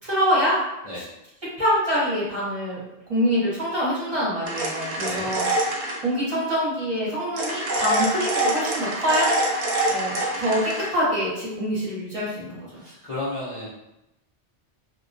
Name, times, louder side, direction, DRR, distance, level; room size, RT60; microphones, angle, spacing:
voice 1, 0.0-0.6 1.6-2.8 3.1-9.3 9.9-12.7, equal, 35° right, -8 dB, 0.9 m, -25 dB
sound 1, 4.5-6.0 7.4-10.9, right 1 dB, 80° right, 0.9 m, -25 dB
voice 2, 5.0-5.3 12.7-13.7, left 2 dB, 45° left, -9 dB, 0.5 m, -33 dB
2.3 x 2.1 x 2.5 m, 0.90 s
omnidirectional pair, 1.1 m